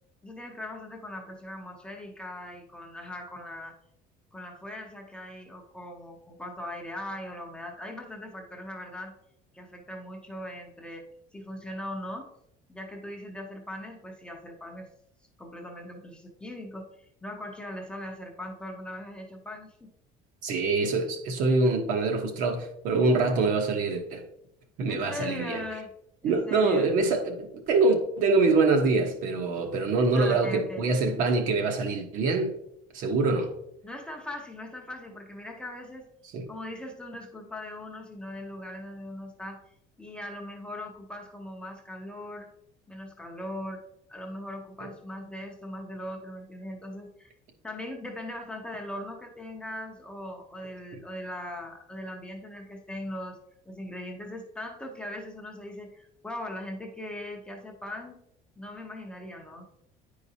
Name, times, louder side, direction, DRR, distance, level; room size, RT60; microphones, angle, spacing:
voice 1, 0.2-3.7 4.3-9.1 9.5-11.1 11.3-12.3 12.7-14.9 15.4-19.9 24.9-25.9 26.2-26.9 30.1-30.8 33.8-36.1 36.5-39.6 40.0-42.5 42.9-43.8 44.1-47.3 47.6-53.4 53.7-58.2 58.6-59.6, left 1 dB, 5° left, 1 dB, 0.6 m, -40 dB
voice 2, 20.4-24.2 24.8-25.6 26.2-32.5 32.9-33.5 36.3-36.4 44.8-44.9 50.9-51.0, right 3 dB, 55° right, 5 dB, 0.9 m, -25 dB
9.3 x 4.8 x 2.7 m, 0.78 s
cardioid pair, 175°, 16 cm